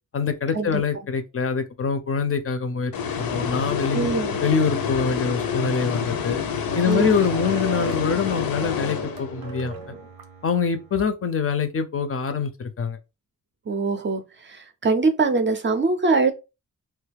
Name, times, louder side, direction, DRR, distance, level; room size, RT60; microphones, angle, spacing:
voice 1, 0.1-2.9 3.2-4.1 4.4-6.4 6.7-9.9 10.4-13.0, left 6 dB, 40° left, 0.4 m, -24 dB
sound 1, 2.9-9.6, left 7 dB, 85° left, 0.6 m, -27 dB
voice 2, 3.9-4.4 6.9-7.2 13.7-16.3, right 3 dB, 35° right, 0.4 m, -23 dB
sound 2, 6.7-11.1, right 5 dB, 90° right, 0.7 m, -38 dB
3.0 x 2.3 x 3.3 m
wide cardioid pair, 125°, 34 cm